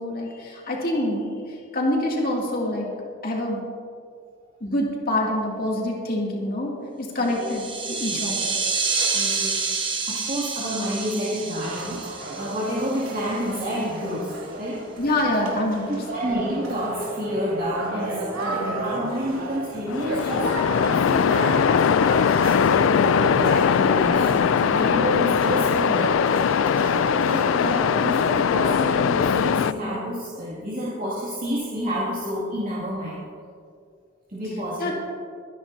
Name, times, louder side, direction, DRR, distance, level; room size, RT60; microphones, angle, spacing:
voice 1, 0.0-2.9 3.2-3.6 4.6-6.7 7.0-7.6 7.9-8.6 15.0-16.0 34.8-34.9, left 1 dB, 45° left, -2 dB, 2.5 m, -26 dB
sound 1, 7.3-13.4, right 4 dB, 25° right, 1.2 m, -28 dB
voice 2, 7.8-8.2 9.1-14.8 15.3-15.4 15.9-26.5 27.3-33.2 34.3-34.9, equal, 40° right, -8 dB, 2.4 m, -30 dB
sound 2, 11.6-27.8, right 2 dB, 85° right, 2.8 m, -32 dB
Waves surf, 19.9-29.7, left 7 dB, 70° left, 0.3 m, -20 dB
23.0 x 10.5 x 2.8 m, 2.3 s
head